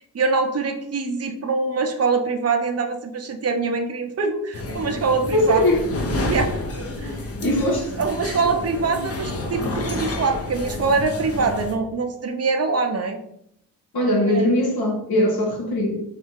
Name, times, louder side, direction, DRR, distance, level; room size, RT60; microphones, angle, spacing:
voice 1, 0.1-5.6 6.3-6.6 7.0-7.1 8.0-13.2 14.3-14.5, right 4 dB, 35° right, 4 dB, 0.8 m, -24 dB
sound 1, 4.5-11.8, left 2 dB, 35° left, 1.0 m, -29 dB
voice 2, 5.3-5.8 7.0-7.1 7.4-7.9 13.9-16.0, left 1 dB, 60° left, -1 dB, 1.4 m, -20 dB
3.3 x 2.7 x 4.6 m, 0.73 s
supercardioid pair, 40°, 41 cm